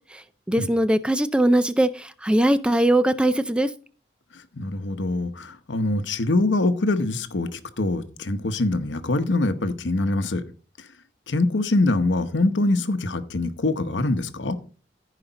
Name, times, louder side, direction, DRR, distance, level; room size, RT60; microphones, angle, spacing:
voice 1, 0.5-3.7, right 1 dB, 5° right, 0.4 m, -20 dB
voice 2, 4.6-10.4 11.3-14.6, left 2 dB, 80° left, 0.9 m, -24 dB
14.5 x 5.0 x 4.0 m
head